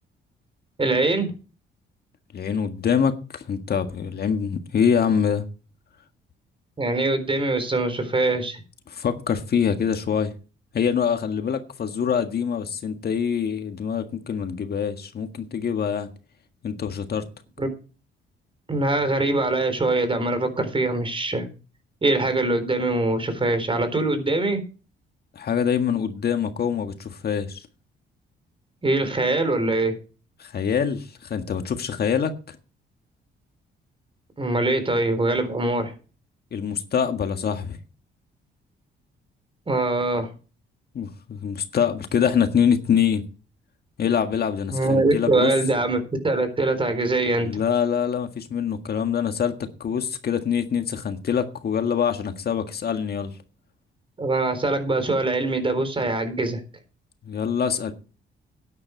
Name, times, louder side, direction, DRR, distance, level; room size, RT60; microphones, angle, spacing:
voice 1, 0.8-1.3 6.8-8.6 17.6-17.7 18.7-21.5 22.0-24.6 28.8-30.0 34.4-35.9 39.7-40.3 44.7-46.0 46.2-47.5 54.2-56.6, right 2 dB, 25° right, 4.1 m, -23 dB
voice 2, 2.3-5.4 8.9-10.3 10.7-16.1 16.6-17.2 25.3-27.7 30.4-32.6 36.5-37.8 40.9-43.2 44.0-45.5 47.4-53.4 57.2-57.9, left 7 dB, 50° left, 1.7 m, -25 dB
12.5 x 10.0 x 4.7 m
cardioid pair, 90°, 20 cm